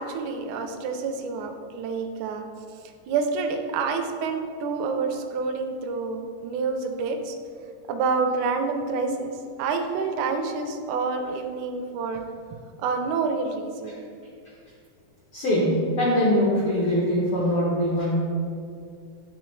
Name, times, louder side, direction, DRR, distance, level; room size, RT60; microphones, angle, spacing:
voice 1, 0.0-2.5 3.1-7.4 7.9-9.3 9.6-12.2 12.8-14.0, right 4 dB, 80° right, 5 dB, 1.8 m, -28 dB
voice 2, 15.3-18.2, equal, 80° left, -6 dB, 1.2 m, -22 dB
9.8 x 3.8 x 3.1 m, 2.4 s
omnidirectional pair, 3.9 m